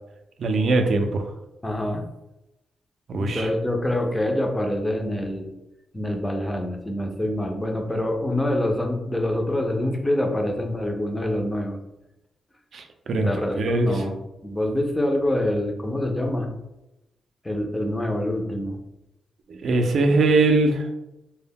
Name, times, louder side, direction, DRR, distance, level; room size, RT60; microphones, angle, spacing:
voice 1, 0.4-1.3 3.1-3.5 12.7-13.3 13.6-13.9 19.6-20.8, right 3 dB, 60° right, 6 dB, 0.3 m, -21 dB
voice 2, 1.6-2.0 3.2-5.5 5.9-11.8 13.2-16.5 17.4-18.8, left 1 dB, 10° left, 2 dB, 0.4 m, -26 dB
2.1 x 2.0 x 3.4 m, 0.93 s
cardioid pair, 120°, 0 cm